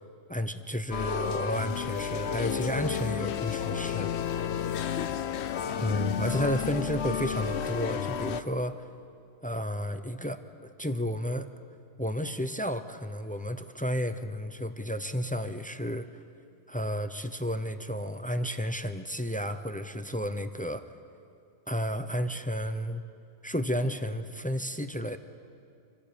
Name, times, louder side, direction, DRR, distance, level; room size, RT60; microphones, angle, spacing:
voice 1, 0.3-4.1 5.8-8.9 9.4-11.5 12.0-16.2 16.7-20.9 21.7-23.0 23.4-25.2, equal, 10° left, 9 dB, 0.6 m, -32 dB
sound 1, 0.9-8.4, left 8 dB, 80° left, 1.0 m, -31 dB
27.5 x 25.0 x 5.2 m, 2.4 s
omnidirectional pair, 1.1 m